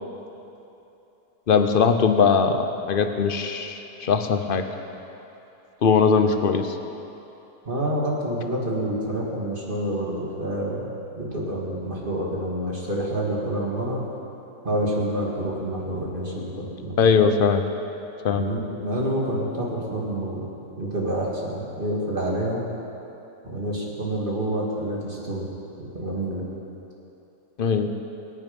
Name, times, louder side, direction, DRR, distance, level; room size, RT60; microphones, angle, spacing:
voice 1, 1.5-4.6 5.8-6.7 17.0-17.6 18.2-18.4 27.6-27.9, left 5 dB, 45° left, 7 dB, 0.8 m, -20 dB
voice 2, 7.7-10.9 11.2-14.0 14.6-17.1 18.4-20.5 20.8-22.6 23.4-25.4 25.8-26.4, right 1 dB, 30° right, -4 dB, 2.4 m, -28 dB
24.0 x 9.1 x 5.4 m, 2.9 s
omnidirectional pair, 1.7 m